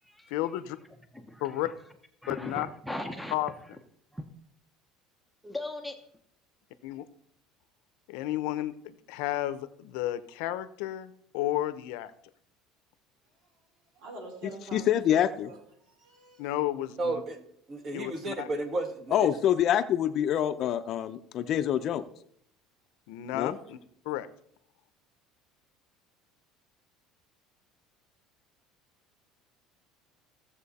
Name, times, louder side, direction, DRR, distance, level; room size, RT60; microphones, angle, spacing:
voice 1, 0.3-0.8 1.4-1.7 2.3-2.7 3.3-3.5 6.8-7.1 8.1-12.1 16.4-17.2 17.9-18.5 23.1-23.8 24.1-24.3, left 14 dB, 80° left, 14 dB, 0.8 m, -32 dB
voice 2, 1.1-1.7 2.2-3.3 4.1-4.3 5.4-6.0, left 1 dB, ahead, 4 dB, 0.9 m, -38 dB
voice 3, 13.9-14.8 15.1-16.5, right 2 dB, 65° right, 2 dB, 4.1 m, -46 dB
voice 4, 14.7-15.5 19.1-22.1 23.3-23.6, left 10 dB, 45° left, 11 dB, 0.6 m, -26 dB
voice 5, 17.0-17.4 17.7-19.3, right 2 dB, 35° right, 5 dB, 1.9 m, -32 dB
16.0 x 7.4 x 4.2 m, 0.69 s
cardioid pair, 140°, 0 cm